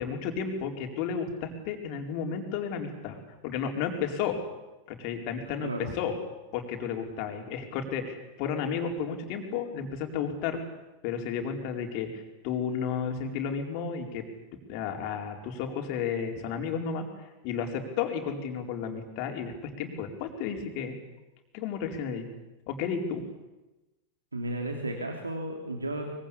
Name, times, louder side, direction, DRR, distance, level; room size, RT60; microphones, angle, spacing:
voice 1, 0.0-3.2 3.4-4.4 4.9-6.1 6.5-10.6 11.0-14.2 14.7-17.1 17.4-21.0 21.5-22.3 22.7-23.2, left 7 dB, 45° left, 4 dB, 4.5 m, -32 dB
voice 2, 5.6-6.0 24.3-26.1, right 1 dB, 80° right, 2 dB, 3.0 m, -33 dB
24.0 x 23.5 x 8.6 m, 1.0 s
figure-of-eight pair, 90°, 0 cm